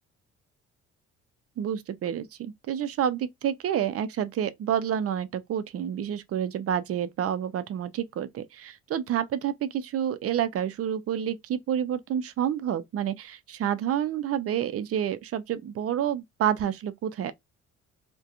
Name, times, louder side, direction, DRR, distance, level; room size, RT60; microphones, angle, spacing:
voice 1, 1.6-17.3, right 9 dB, 50° right, 0.4 m, -29 dB
2.3 x 2.2 x 2.8 m
cardioid pair, 90°, 30 cm